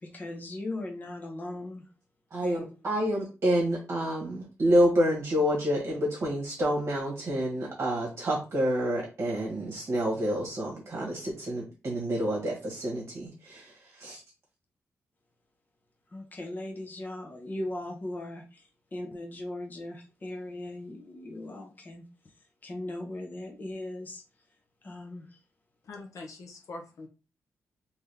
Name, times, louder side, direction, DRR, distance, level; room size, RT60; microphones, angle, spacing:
voice 1, 0.0-1.8 2.4-2.7 16.1-18.6 18.9-22.0 22.6-24.2 24.8-25.3, left 1 dB, 30° left, 0.9 m, -38 dB
voice 2, 2.3-14.2, equal, 45° right, 1.4 m, -28 dB
voice 3, 25.9-27.1, left 2 dB, 70° left, 0.8 m, -43 dB
3.8 x 2.9 x 3.4 m
wide cardioid pair, 120°, 6 cm